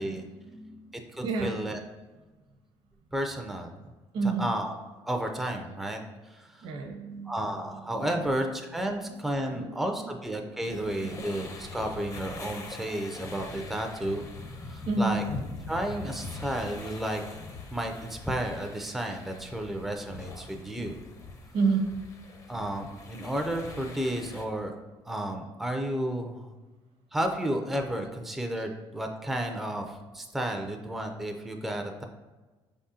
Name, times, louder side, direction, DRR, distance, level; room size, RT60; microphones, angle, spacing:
voice 1, 0.0-1.0 1.2-1.6 4.1-4.5 6.6-7.4 8.1-8.2 9.5-9.9 10.8-11.2 14.8-15.1 21.5-21.9, right 4 dB, 75° right, 3 dB, 1.0 m, -30 dB
voice 2, 1.1-1.8 3.1-3.7 4.4-4.7 5.1-6.7 7.2-14.2 14.6-15.2 15.7-17.2 17.7-21.0 22.5-24.7 25.1-26.5 27.1-32.0, right 1 dB, ahead, 3 dB, 0.4 m, -32 dB
sound 1, 10.7-24.4, left 3 dB, 35° left, 0.6 m, -43 dB
5.1 x 3.6 x 2.7 m, 1.2 s
cardioid pair, 115°, 10 cm